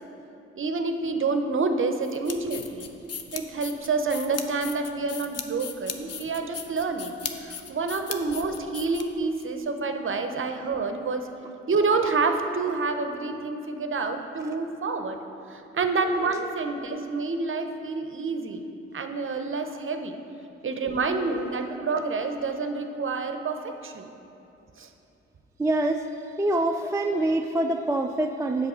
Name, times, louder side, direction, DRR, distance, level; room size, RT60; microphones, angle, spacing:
voice 1, 0.6-2.9 3.3-7.2 7.4-11.3 11.7-15.2 15.5-18.6 18.9-20.2 20.6-24.1 24.8-24.9, right 4 dB, 40° right, 7 dB, 0.7 m, -28 dB
sound 1, 2.0-9.4, left 7 dB, 55° left, 0.6 m, -38 dB
voice 2, 21.3-22.0 25.6-26.1 26.4-28.7, right 2 dB, 10° right, 5 dB, 0.3 m, -26 dB
7.7 x 6.1 x 4.3 m, 2.8 s
supercardioid pair, 45°, 31 cm